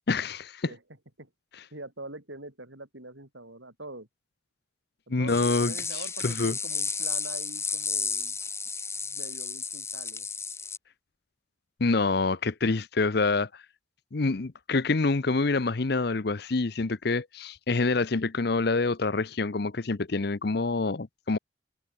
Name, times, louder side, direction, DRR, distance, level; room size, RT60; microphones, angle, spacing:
voice 1, 0.1-0.7 5.1-5.7 6.2-6.5 11.8-13.6 14.1-21.4, left 3 dB, 55° left, 0.7 m, -26 dB
voice 2, 0.6-1.3 1.7-4.1 5.2-8.4 9.0-10.3, right 2 dB, 70° right, 5.3 m, -44 dB
sound 1, 5.3-10.8, left 5 dB, 15° left, 1.4 m, -33 dB
head